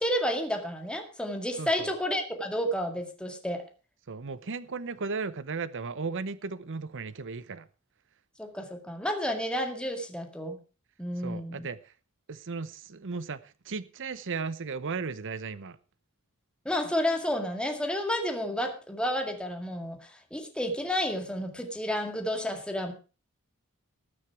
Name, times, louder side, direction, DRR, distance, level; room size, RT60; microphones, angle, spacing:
voice 1, 0.0-3.6 8.4-10.6 11.0-11.7 16.7-22.9, equal, 5° left, 2.0 m, -31 dB
voice 2, 1.6-1.9 4.1-7.7 11.2-11.9 12.3-15.8, right 4 dB, 60° right, 0.8 m, -36 dB
19.5 x 6.6 x 4.7 m
head